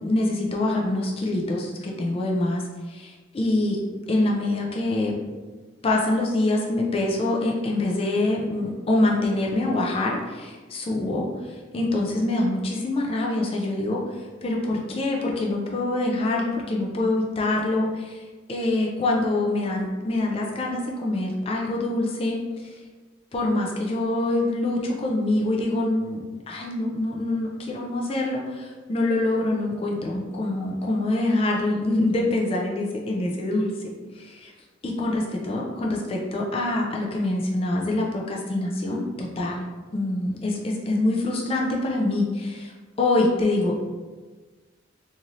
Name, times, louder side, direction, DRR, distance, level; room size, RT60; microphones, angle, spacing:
voice 1, 0.0-2.6 2.9-3.8 4.1-5.1 5.8-22.7 23.3-34.5 34.8-39.7 39.9-42.7 43.0-43.8, left 2 dB, 30° left, -1 dB, 0.3 m, -25 dB
3.0 x 2.6 x 2.5 m, 1.3 s
head